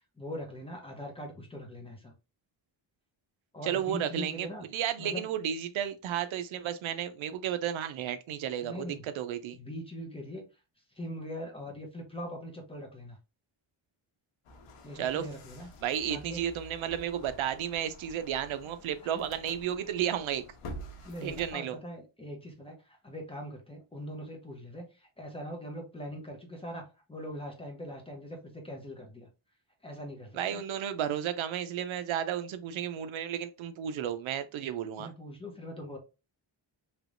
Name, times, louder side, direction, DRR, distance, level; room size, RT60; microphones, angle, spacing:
voice 1, 0.2-2.1 3.5-4.7 5.0-5.3 8.6-9.0 9.5-10.4 11.0-13.2 14.8-15.7 16.0-16.4 19.1-19.3 21.0-29.3 29.8-30.6 35.0-36.0, equal, 10° left, 0.8 m, -41 dB
voice 2, 3.6-4.5 4.7-9.6 15.0-15.3 15.8-20.4 21.2-21.8 30.3-35.1, right 10 dB, 70° right, 0.5 m, -33 dB
sound 1, 14.4-21.5, equal, 90° left, 0.9 m, -48 dB
3.3 x 2.9 x 2.5 m
wide cardioid pair, 130°, 50 cm